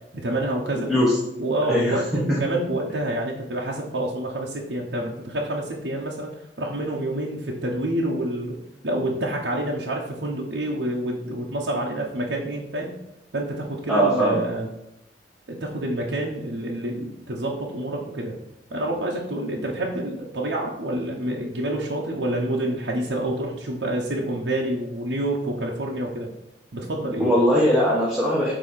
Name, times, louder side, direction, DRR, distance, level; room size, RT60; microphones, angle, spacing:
voice 1, 0.1-0.9 1.4-6.3 6.6-8.6 8.8-12.9 13.3-14.7 15.5-18.3 18.7-26.3 26.7-27.3, right 1 dB, 80° right, -3 dB, 1.0 m, -27 dB
voice 2, 1.7-2.0 2.3-2.4 13.9-14.4 27.2-28.5, equal, ahead, -7 dB, 1.3 m, -20 dB
8.1 x 3.0 x 5.7 m, 0.85 s
head